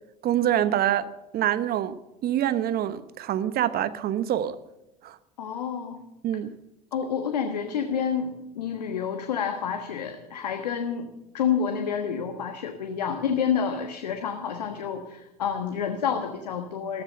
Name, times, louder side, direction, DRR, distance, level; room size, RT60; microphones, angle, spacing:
voice 1, 0.2-1.1 1.3-2.0 2.2-4.6 5.0-5.2 6.2-6.5, right 11 dB, 50° right, 13 dB, 1.2 m, -25 dB
voice 2, 5.4-6.0 6.9-11.1 11.3-17.0, left 7 dB, 85° left, 5 dB, 1.4 m, -29 dB
14.5 x 13.5 x 6.7 m, 0.93 s
hypercardioid pair, 75°, 21 cm